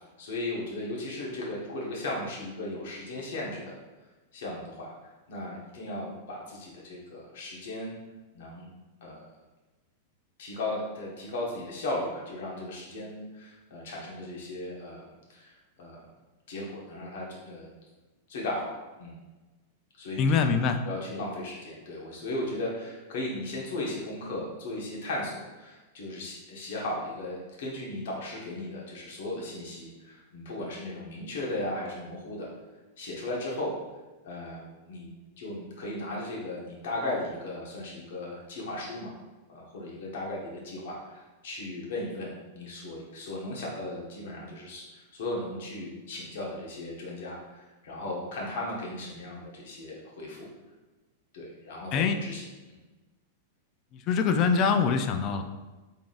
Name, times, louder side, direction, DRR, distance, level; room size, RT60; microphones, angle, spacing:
voice 1, 0.2-3.7 4.3-4.9 5.3-7.9 8.3-8.7 9.0-9.3 10.4-16.0 16.5-17.7 18.3-19.2 20.0-20.6 20.8-32.5 33.0-33.7 34.2-35.1 35.4-39.1 39.5-50.5 51.3-52.8, left 1 dB, 70° left, -3 dB, 1.3 m, -36 dB
voice 2, 20.2-20.8 51.9-52.2 53.9-55.4, left 5 dB, 40° left, 7 dB, 0.4 m, -24 dB
3.8 x 3.5 x 2.5 m, 1.2 s
hypercardioid pair, 125°, 0 cm